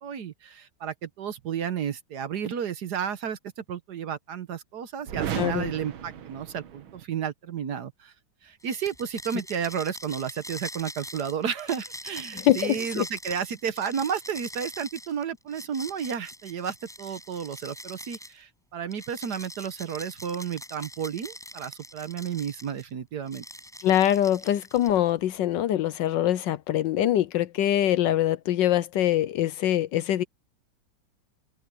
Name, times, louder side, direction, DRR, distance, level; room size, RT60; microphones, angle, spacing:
voice 1, 0.0-8.1 8.4-23.4, right 8 dB, 60° right, 1.4 m, -32 dB
sound 1, 5.0-7.1, right 9 dB, 80° right, 2.0 m, -35 dB
voice 2, 5.4-5.7 12.5-13.0 23.8-30.2, left 12 dB, 70° left, 1.2 m, -24 dB
sound 2, 8.6-18.4 18.9-22.9 23.3-25.1, equal, ahead, 6.5 m, -43 dB
open air
omnidirectional pair, 2.2 m